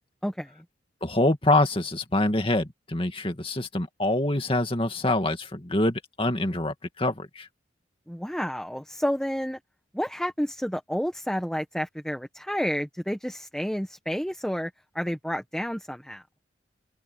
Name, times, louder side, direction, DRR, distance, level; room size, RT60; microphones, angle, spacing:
voice 1, 0.2-0.6 8.1-9.6 9.9-16.2, equal, 5° left, 1.1 m, -30 dB
voice 2, 1.0-7.5, left 2 dB, 30° left, 2.3 m, -25 dB
open air
head